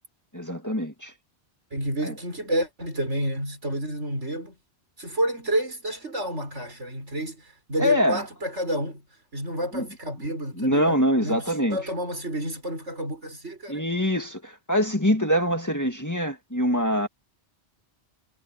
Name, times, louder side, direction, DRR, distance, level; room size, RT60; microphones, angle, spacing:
voice 1, 0.3-1.1 2.0-2.1 7.8-8.2 9.7-9.9 10.6-11.8 13.7-17.1, equal, 15° left, 2.0 m, -24 dB
voice 2, 1.7-4.6 5.0-9.0 9.3-13.8, right 1 dB, 85° right, 7.4 m, -30 dB
omnidirectional pair, 1.2 m